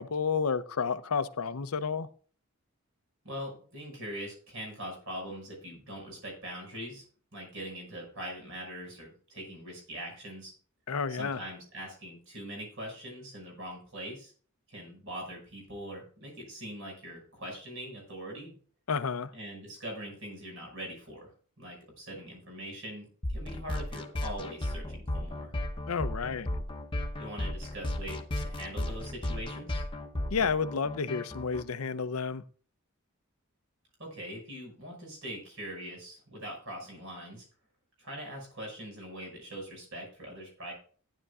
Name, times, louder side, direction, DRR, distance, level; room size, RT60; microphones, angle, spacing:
voice 1, 0.0-2.1 10.9-11.4 18.9-19.3 25.9-26.5 30.3-32.4, left 5 dB, 80° left, 0.6 m, -31 dB
voice 2, 3.2-7.0 7.3-10.5 11.1-14.3 14.7-18.5 19.3-21.3 21.6-25.5 27.2-29.8 34.0-37.5 38.0-40.7, equal, 60° right, 5.8 m, -42 dB
sound 1, 23.2-31.6, left 1 dB, 25° left, 0.9 m, -35 dB
15.0 x 10.0 x 2.4 m
head